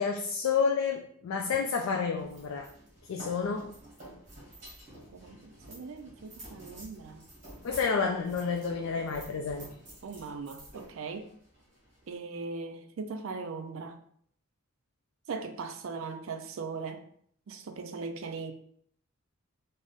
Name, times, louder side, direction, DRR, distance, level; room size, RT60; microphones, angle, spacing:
voice 1, 0.0-2.7 3.1-3.7 7.6-9.7, left 5 dB, 70° left, 3 dB, 0.3 m, -30 dB
sound 1, 2.2-12.2, right 1 dB, 35° right, 1.4 m, -50 dB
voice 2, 5.1-7.2 10.0-11.3 12.1-14.0 15.3-17.0 17.5-18.5, right 4 dB, 65° right, 8 dB, 0.4 m, -39 dB
3.4 x 2.0 x 3.9 m, 0.64 s
head